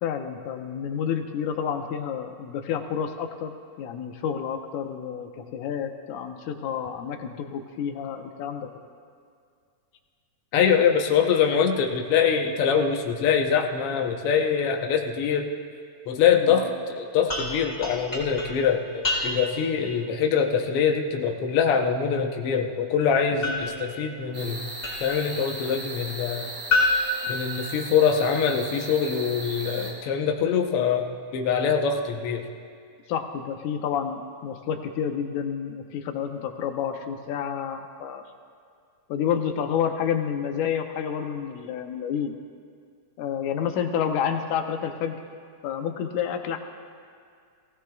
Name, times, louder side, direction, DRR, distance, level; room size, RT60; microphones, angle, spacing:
voice 1, 0.0-8.9 16.4-16.7 23.4-23.7 33.1-38.2 39.1-42.3 43.2-45.2 45.6-46.6, left 8 dB, 85° left, 5 dB, 2.2 m, -29 dB
voice 2, 10.5-15.5 16.1-24.7 25.0-26.5 27.3-32.4, left 7 dB, 65° left, 2 dB, 1.5 m, -24 dB
sound 1, 17.3-19.7 23.4-25.3 26.7-28.2, left 2 dB, 25° left, 2.2 m, -29 dB
sound 2, 24.3-29.9, right 2 dB, 50° right, 3.3 m, -37 dB
19.0 x 16.0 x 2.3 m, 2.2 s
omnidirectional pair, 3.5 m